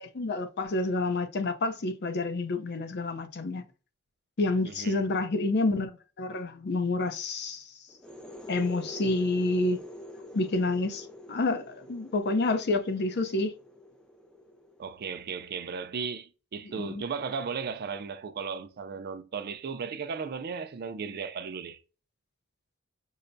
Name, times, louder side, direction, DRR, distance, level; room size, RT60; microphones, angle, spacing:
voice 1, 0.0-3.6 4.4-7.7 8.5-9.8 10.3-13.5 16.8-17.0, left 2 dB, 55° left, 0.6 m, -29 dB
voice 2, 4.7-5.1 14.8-21.8, right 5 dB, 50° right, 0.4 m, -36 dB
sound 1, 7.9-15.4, left 1 dB, 5° left, 0.5 m, -46 dB
5.5 x 2.1 x 2.6 m
head